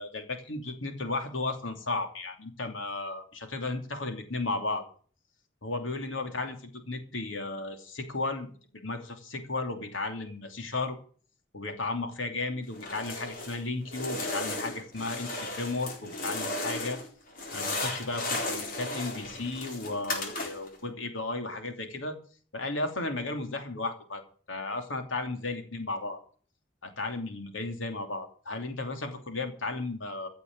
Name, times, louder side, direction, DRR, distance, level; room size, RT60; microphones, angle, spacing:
voice 1, 0.0-4.8 5.6-6.6 6.8-8.5 8.7-11.0 11.5-17.0 17.5-22.2 22.5-24.2 24.5-26.2 26.8-30.3, left 2 dB, 85° left, 6 dB, 2.9 m, -34 dB
sound 1, 12.7-13.6 13.9-17.1 17.3-20.8, left 2 dB, 45° left, 4.1 m, -35 dB
16.0 x 6.8 x 8.6 m, 0.43 s
head